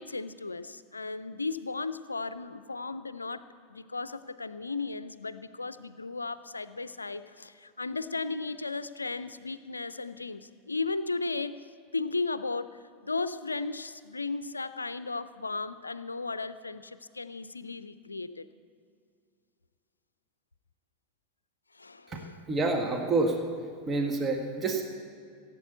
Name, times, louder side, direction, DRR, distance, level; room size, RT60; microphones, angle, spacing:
voice 1, 0.0-3.4 3.7-11.7 11.9-18.5 21.7-22.4, left 3 dB, 85° left, 14 dB, 0.4 m, -35 dB
voice 2, 22.5-23.4 23.9-24.8, right 3 dB, 25° right, 2 dB, 1.6 m, -27 dB
15.5 x 8.2 x 8.2 m, 2.3 s
figure-of-eight pair, 85°, 0 cm